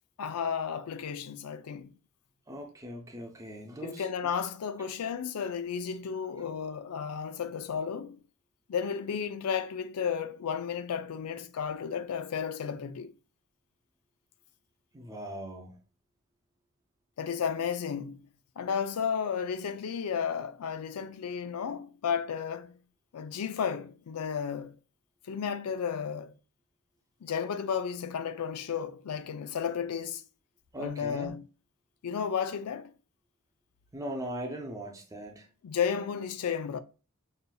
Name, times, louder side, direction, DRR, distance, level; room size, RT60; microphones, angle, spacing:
voice 1, 0.2-1.9 3.8-8.2 8.7-13.1 17.2-18.2 18.6-22.8 23.1-24.8 25.3-26.3 27.2-30.2 30.8-31.4 32.0-32.9 35.6-36.8, left 7 dB, 85° left, 0.4 m, -33 dB
voice 2, 2.5-4.1 14.9-15.8 30.7-31.3 33.9-35.5, right 1 dB, 15° right, 0.6 m, -39 dB
5.5 x 2.7 x 2.3 m
head